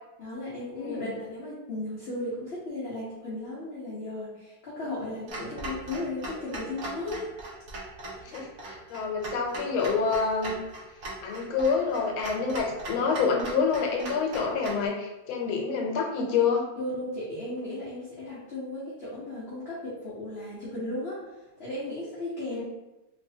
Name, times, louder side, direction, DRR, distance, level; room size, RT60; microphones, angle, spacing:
voice 1, 0.2-7.2 8.1-8.5 16.8-21.2 21.6-22.6, left 1 dB, 50° left, -9 dB, 0.8 m, -35 dB
voice 2, 0.8-1.1 8.2-10.6 11.2-16.6 22.5-22.6, left 5 dB, 85° left, 1 dB, 1.5 m, -27 dB
Clock, 5.3-14.9, right 1 dB, 65° right, 0.8 m, -40 dB
3.3 x 3.1 x 2.7 m, 0.99 s
omnidirectional pair, 2.2 m